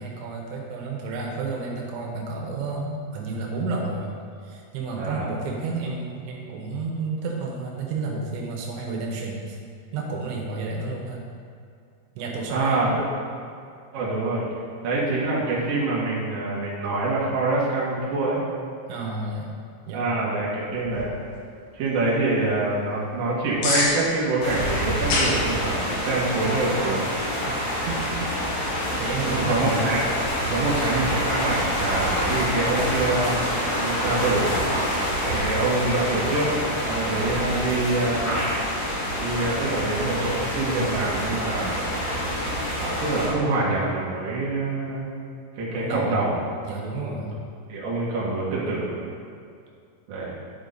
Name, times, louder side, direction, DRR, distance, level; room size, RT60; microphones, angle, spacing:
voice 1, 0.0-4.2 4.4-9.6 9.9-11.3 12.2-13.0 18.9-20.0 27.5-28.1 28.7-29.8 30.4-30.7 35.3-35.5 45.7-46.2 46.6-47.4, right 3 dB, 90° right, -1 dB, 3.3 m, -31 dB
voice 2, 5.0-5.3 12.5-12.9 13.9-14.4 14.8-18.4 19.9-21.1 21.7-27.1 29.2-30.0 30.5-34.6 35.2-38.4 39.2-42.0 42.8-45.1 45.5-46.5 46.9-47.2 47.7-49.1 50.1-50.3, right 2 dB, 60° right, -6 dB, 3.0 m, -25 dB
sound 1, 20.7-31.3, left 2 dB, 85° left, 3.8 m, -33 dB
sound 2, 24.4-43.3, equal, 70° left, 3.5 m, -27 dB
12.0 x 5.1 x 4.0 m, 2.4 s
omnidirectional pair, 5.1 m